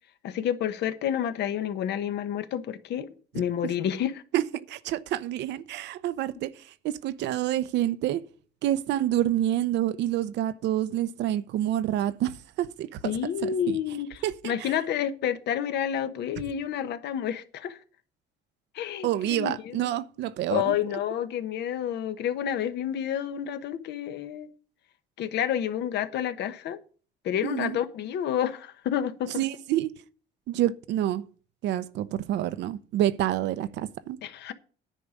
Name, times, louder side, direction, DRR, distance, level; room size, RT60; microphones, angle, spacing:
voice 1, 0.2-4.2 13.0-17.8 18.7-20.0 20.5-24.5 25.2-26.8 27.2-29.4 34.2-34.5, left 9 dB, 70° left, 1.1 m, -29 dB
voice 2, 4.3-8.2 8.6-13.8 14.2-14.7 19.0-20.7 27.4-27.8 29.4-29.9 30.5-31.2 31.6-34.2, right 12 dB, 75° right, 0.7 m, -28 dB
10.0 x 5.1 x 8.2 m
cardioid pair, 105°, 18 cm